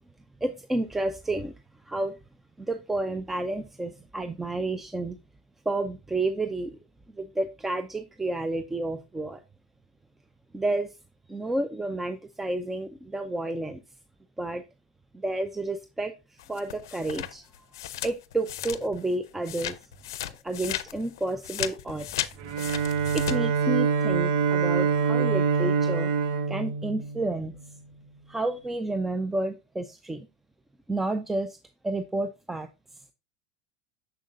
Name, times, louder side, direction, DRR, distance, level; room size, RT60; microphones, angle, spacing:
voice 1, 0.4-1.5 1.8-2.2 2.6-5.2 5.7-6.8 7.1-9.4 10.5-11.0 11.3-13.8 14.4-14.6 15.1-17.5 18.0-19.8 20.4-22.5 23.0-26.1 26.5-27.6 28.3-30.3 30.9-31.6 31.8-32.7, right 2 dB, 10° right, 9 dB, 0.6 m, -30 dB
sound 1, 16.4-19.1 19.4-23.4, left 13 dB, 80° left, 0.5 m, -35 dB
Bowed string instrument, 22.4-27.6, right 6 dB, 70° right, 0.7 m, -25 dB
6.6 x 6.2 x 2.5 m, 0.26 s
hypercardioid pair, 100°, 2 cm